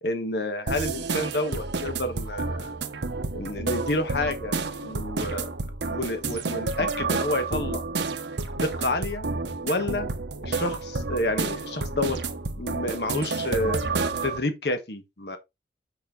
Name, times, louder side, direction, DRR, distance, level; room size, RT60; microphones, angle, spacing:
voice 1, 0.0-2.8 3.3-5.5 5.9-7.9 8.6-9.3 9.6-10.1 10.4-12.2 12.6-13.8 14.2-15.4, left 2 dB, 70° left, 1.3 m, -29 dB
sound 1, 0.7-14.4, right 3 dB, 85° right, 0.9 m, -30 dB
6.4 x 5.5 x 3.7 m
head